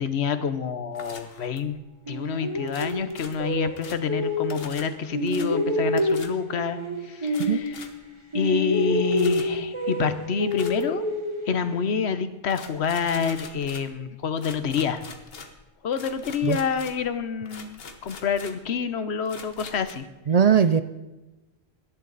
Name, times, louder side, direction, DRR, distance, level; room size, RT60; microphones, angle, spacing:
voice 1, 0.0-1.8 2.1-7.8 8.3-11.0 11.5-15.0 15.8-20.1, left 6 dB, 90° left, 12 dB, 1.2 m, -27 dB
sound 1, 0.9-1.8 2.6-4.1 4.5-4.9 5.3-5.5 6.0-6.4 7.3-8.1 9.1-9.6 10.5-11.0 12.5-14.0 14.4-17.2 17.4-18.7 19.3-19.9, left 4 dB, 65° left, 1.4 m, -44 dB
sound 2, 2.1-4.8 5.1-8.1 8.3-11.9, left 1 dB, 30° right, 1.5 m, -28 dB
voice 2, 20.3-20.8, right 7 dB, 50° right, 11 dB, 0.5 m, -19 dB
17.5 x 11.5 x 4.0 m, 1.1 s
omnidirectional pair, 1.1 m